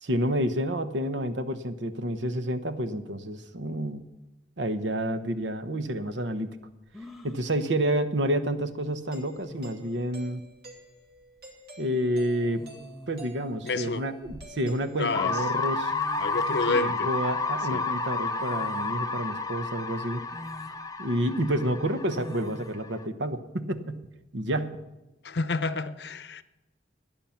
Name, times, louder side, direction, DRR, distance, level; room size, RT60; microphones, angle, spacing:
voice 1, 0.0-4.0 4.6-6.5 7.2-10.4 11.8-12.6 13.1-15.9 16.7-20.2 21.0-24.1 24.3-24.8, right 1 dB, 85° right, 1.1 m, -29 dB
sound 1, 6.9-7.4 8.9-9.0 9.4-9.9 11.2-11.4 12.5-13.3 13.9-15.0 15.6-15.7 15.9-16.8 18.4-19.0 19.5-19.6 20.3-20.8 22.1-22.8, left 1 dB, ahead, 1.1 m, -46 dB
Doorbell, 9.1-15.4, right 1 dB, 60° right, 2.7 m, -50 dB
voice 2, 13.6-14.0 15.0-15.4 16.2-17.1 17.7-17.8 25.2-26.4, left 3 dB, 70° left, 0.7 m, -29 dB
sound 2, 15.1-23.0, left 3 dB, 20° left, 0.6 m, -31 dB
21.0 x 8.9 x 5.8 m
head